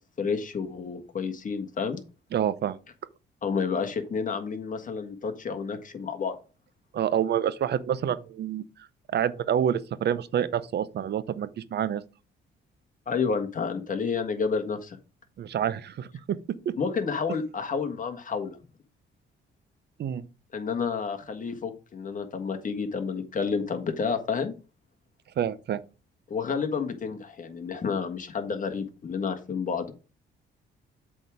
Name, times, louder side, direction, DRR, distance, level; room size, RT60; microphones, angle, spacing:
voice 1, 0.2-2.0 3.4-6.3 13.1-15.0 16.8-18.6 20.5-24.5 26.3-29.9, left 5 dB, 40° left, 1.6 m, -30 dB
voice 2, 2.3-2.8 6.9-8.6 9.1-12.0 15.4-16.1 20.0-20.2 25.4-25.8, right 9 dB, 60° right, 0.7 m, -27 dB
7.9 x 3.7 x 6.3 m
cardioid pair, 90°, 20 cm